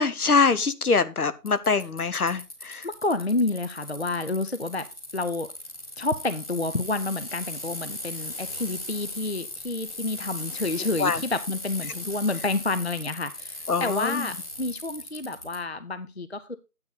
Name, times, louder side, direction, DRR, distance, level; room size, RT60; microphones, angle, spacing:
voice 1, 0.0-2.9 11.0-11.2 13.7-14.3, left 4 dB, 70° left, 13 dB, 1.0 m, -24 dB
Bicycle, 1.5-15.6, left 2 dB, 25° left, 1.9 m, -38 dB
voice 2, 2.8-4.8 5.1-5.5 6.0-16.6, left 2 dB, 45° left, 12 dB, 0.5 m, -29 dB
9.6 x 8.1 x 3.9 m, 0.27 s
figure-of-eight pair, 170°, 45 cm